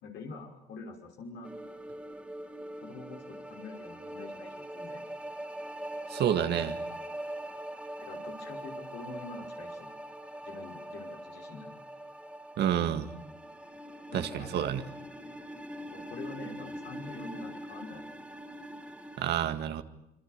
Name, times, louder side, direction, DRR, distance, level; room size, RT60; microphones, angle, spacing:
voice 1, 0.0-1.5 2.8-5.0 8.0-9.9 10.4-11.7 14.1-14.7 15.9-18.1, left 3 dB, 80° left, 2 dB, 5.9 m, -45 dB
sound 1, 1.4-19.2, right 1 dB, 5° right, 3.1 m, -42 dB
voice 2, 6.1-6.8 12.6-13.1 14.1-14.8 19.2-19.8, right 10 dB, 70° right, 9 dB, 2.0 m, -29 dB
26.0 x 25.5 x 6.7 m, 0.86 s
supercardioid pair, 75°, 18 cm